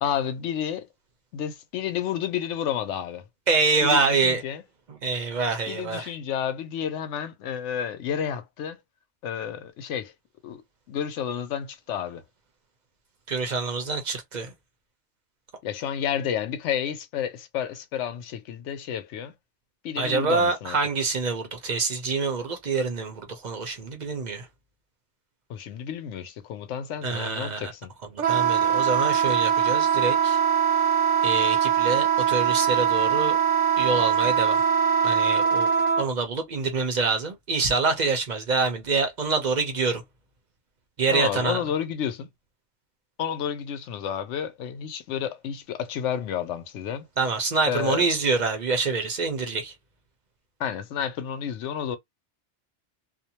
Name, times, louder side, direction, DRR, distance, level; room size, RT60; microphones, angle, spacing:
voice 1, 0.0-0.9 1.3-3.2 3.8-4.6 5.7-8.8 9.2-10.1 10.4-10.6 10.9-12.2 15.6-19.3 19.8-20.8 25.5-27.9 41.1-42.3 43.2-47.1 47.6-48.1 50.6-52.0, left 9 dB, 85° left, 0.9 m, -30 dB
voice 2, 3.5-4.4 5.0-6.1 13.3-14.5 20.0-24.5 27.0-27.7 28.3-30.4 31.2-33.4 33.8-34.6 35.0-35.7 36.0-40.0 41.0-41.6 47.2-49.7, right 4 dB, 45° right, 0.7 m, -26 dB
Wind instrument woodwind instrument, 28.2-36.0, right 7 dB, 85° right, 1.0 m, -22 dB
2.5 x 2.1 x 2.8 m
omnidirectional pair, 1.2 m